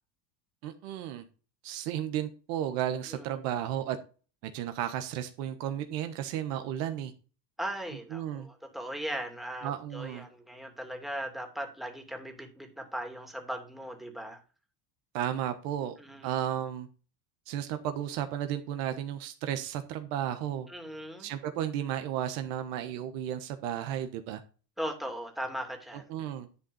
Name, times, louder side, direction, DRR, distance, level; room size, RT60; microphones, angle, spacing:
voice 1, 0.6-1.2 1.6-4.0 4.4-7.1 8.1-8.5 9.6-10.2 15.1-16.0 16.2-16.9 17.5-20.7 21.2-24.4 26.1-26.5, right 10 dB, 70° right, 8 dB, 1.3 m, -33 dB
voice 2, 7.6-14.4 16.0-16.3 20.7-21.3 24.8-26.0, equal, ahead, 3 dB, 2.6 m, -38 dB
11.0 x 3.8 x 7.0 m, 0.36 s
supercardioid pair, 95°, 49 cm